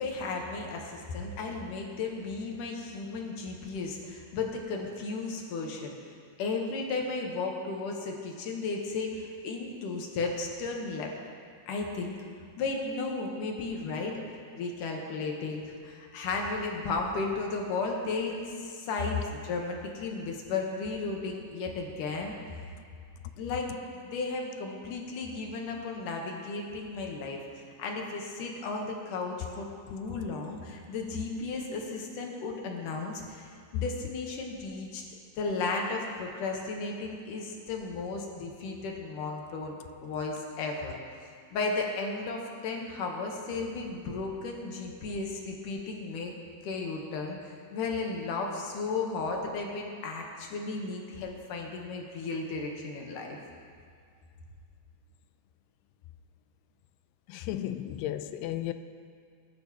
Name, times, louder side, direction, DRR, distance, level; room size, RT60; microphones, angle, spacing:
voice 1, 0.0-6.0 6.4-11.1 11.7-12.2 12.6-14.1 14.5-22.4 23.4-35.0 35.4-39.8 40.0-41.0 41.5-46.3 46.6-53.4, left 3 dB, 65° left, 0 dB, 2.5 m, -34 dB
voice 2, 57.3-58.7, left 13 dB, 90° left, 10 dB, 2.6 m, -34 dB
21.0 x 11.5 x 3.1 m, 2.2 s
omnidirectional pair, 4.5 m